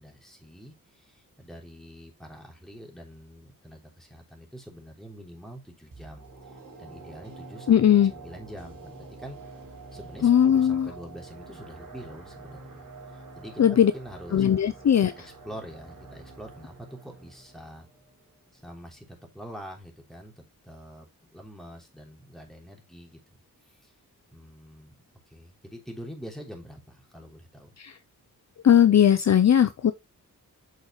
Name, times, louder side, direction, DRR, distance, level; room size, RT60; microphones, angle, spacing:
voice 1, 0.0-7.8 8.1-9.4 9.9-12.8 13.1-17.9 18.5-23.4 23.7-23.9 24.3-24.9 25.3-27.7, equal, ahead, 3.3 m, -45 dB
sound 1, 5.9-19.0 19.3-19.4, right 3 dB, 75° right, 4.8 m, -46 dB
voice 2, 7.7-8.1 10.2-10.9 13.6-13.9 14.3-15.1 27.8-27.9 28.6-29.9, left 9 dB, 50° left, 0.6 m, -19 dB
7.8 x 6.5 x 3.1 m
wide cardioid pair, 100°, 34 cm